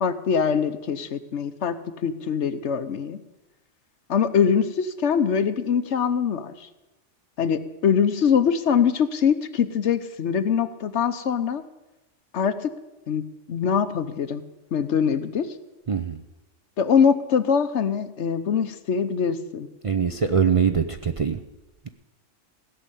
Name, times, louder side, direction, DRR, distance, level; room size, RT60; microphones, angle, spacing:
voice 1, 0.0-3.2 4.1-6.7 7.4-11.6 12.3-12.7 13.1-13.2 13.5-14.4 14.7-15.5 16.8-19.7, left 7 dB, 70° left, 10 dB, 1.2 m, -23 dB
voice 2, 15.9-16.2 19.8-21.4, right 6 dB, 40° right, 6 dB, 0.5 m, -22 dB
16.5 x 6.7 x 9.9 m, 1.0 s
omnidirectional pair, 1.3 m